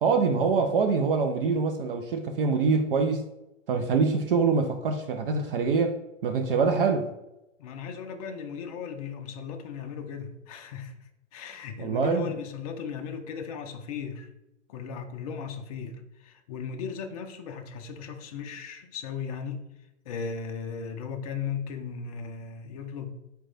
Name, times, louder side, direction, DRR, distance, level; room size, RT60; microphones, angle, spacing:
voice 1, 0.0-3.2 3.7-6.0 6.2-7.1 11.8-12.3, right 4 dB, 45° right, 6 dB, 0.5 m, -24 dB
voice 2, 7.6-14.3 14.7-19.6 20.0-23.2, left 6 dB, 30° left, 4 dB, 0.4 m, -37 dB
4.5 x 2.2 x 3.9 m, 0.91 s
hypercardioid pair, 115°, 39 cm